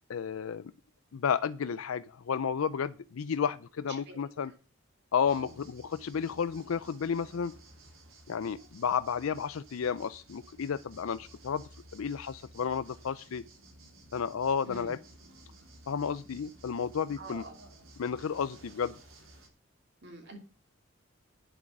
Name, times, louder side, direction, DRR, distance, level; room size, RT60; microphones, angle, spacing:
voice 1, 0.1-0.7 1.1-4.5 5.1-7.5 8.3-11.6 11.9-13.4 14.1-15.0 15.9-17.4 18.0-19.0, left 6 dB, 90° left, 14 dB, 0.4 m, -32 dB
voice 2, 3.9-4.2 4.4-4.5 5.3-5.6 14.6-14.9 17.2-17.6 20.0-20.4, right 2 dB, 55° right, 2 dB, 2.8 m, -45 dB
sound 1, 5.2-19.5, right 1 dB, 90° right, 3.6 m, -55 dB
10.0 x 8.0 x 6.0 m, 0.37 s
head